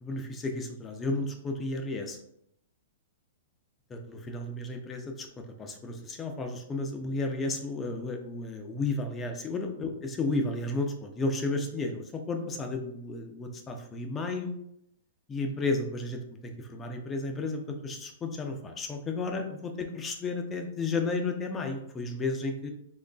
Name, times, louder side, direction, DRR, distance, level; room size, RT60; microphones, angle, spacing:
voice 1, 0.0-2.2 3.9-5.3 5.6-14.5 15.3-22.7, left 3 dB, 15° left, 4 dB, 0.4 m, -33 dB
3.8 x 3.0 x 2.2 m, 0.75 s
hypercardioid pair, 160°, 0 cm